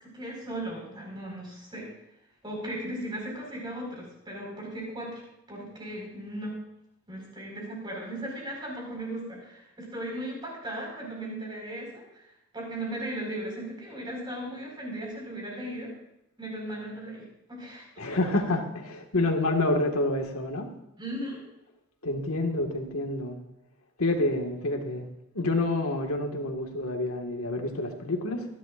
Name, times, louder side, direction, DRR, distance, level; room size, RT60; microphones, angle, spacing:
voice 1, 0.0-1.9 2.4-5.2 5.5-6.5 7.1-12.2 12.5-15.9 16.4-17.9 21.0-21.4, right 1 dB, 20° right, -2 dB, 4.9 m, -37 dB
voice 2, 18.0-20.7 22.0-23.4 24.0-25.1 25.4-28.5, left 2 dB, 90° left, 3 dB, 1.8 m, -28 dB
24.5 x 11.5 x 2.5 m, 0.82 s
head